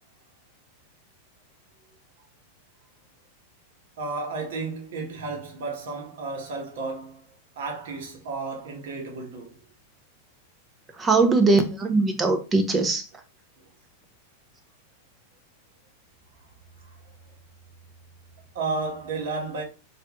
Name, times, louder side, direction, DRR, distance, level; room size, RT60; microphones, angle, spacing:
voice 1, 4.0-7.3 7.6-9.6 18.5-19.6, right 3 dB, 70° right, 1.0 m, -32 dB
voice 2, 11.0-13.0, right 3 dB, 15° right, 0.5 m, -21 dB
3.3 x 2.3 x 2.9 m
supercardioid pair, 140°, 0 cm